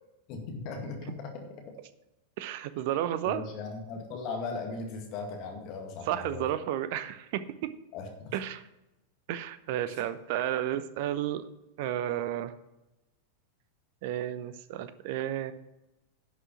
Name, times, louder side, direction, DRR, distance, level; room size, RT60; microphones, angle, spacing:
voice 1, 0.3-1.8 3.2-6.5 7.9-8.3, left 4 dB, 40° left, 3 dB, 2.0 m, -38 dB
voice 2, 2.4-3.4 6.1-7.7 8.3-8.6 9.3-11.4 11.8-12.5 14.0-15.5, right 11 dB, 50° right, 14 dB, 0.8 m, -32 dB
11.0 x 6.3 x 5.8 m, 0.97 s
figure-of-eight pair, 90°, 0 cm